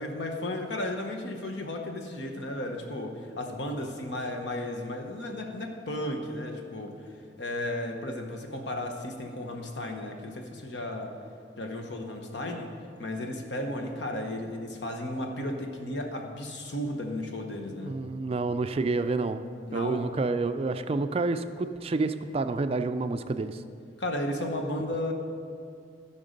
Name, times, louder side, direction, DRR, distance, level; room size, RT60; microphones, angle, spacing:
voice 1, 0.0-7.1 7.4-11.1 11.6-12.7 13.0-17.9 19.7-20.0 24.0-25.1, left 1 dB, 80° left, 3 dB, 1.2 m, -34 dB
voice 2, 17.8-19.4 19.7-23.6, right 3 dB, 35° right, 10 dB, 0.3 m, -29 dB
14.5 x 5.8 x 5.2 m, 2.3 s
head